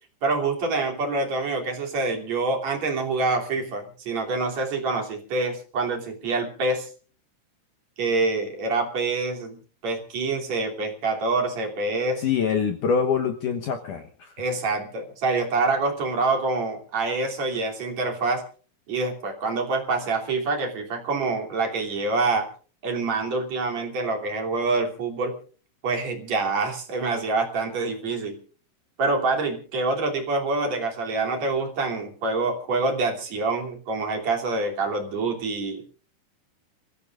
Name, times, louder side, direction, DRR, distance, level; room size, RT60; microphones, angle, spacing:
voice 1, 0.2-6.9 8.0-12.2 14.4-18.4 18.9-22.5 22.8-25.4 25.8-28.4 29.0-36.0, right 3 dB, 40° right, 2 dB, 3.8 m, -26 dB
voice 2, 12.2-14.3, left 6 dB, 80° left, 4 dB, 1.8 m, -25 dB
30.0 x 16.0 x 2.5 m, 0.39 s
omnidirectional pair, 5.5 m